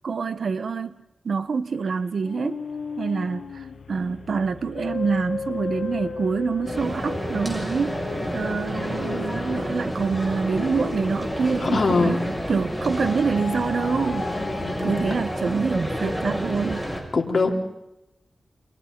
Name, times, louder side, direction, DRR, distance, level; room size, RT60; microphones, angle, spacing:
voice 1, 0.0-1.0 1.2-2.6 3.0-8.0 8.3-12.2 12.5-14.3 14.8-16.9, right 5 dB, 70° right, 12 dB, 1.2 m, -26 dB
sound 1, 2.2-12.4 13.0-15.7, left 5 dB, 85° left, 1.4 m, -36 dB
sound 2, 6.6-17.0, equal, 5° right, 6.7 m, -29 dB
voice 2, 11.6-12.2 14.4-15.0 17.1-17.6, left 3 dB, 55° left, 2 dB, 4.0 m, -24 dB
29.0 x 27.0 x 4.1 m, 0.90 s
wide cardioid pair, 90°, 0 cm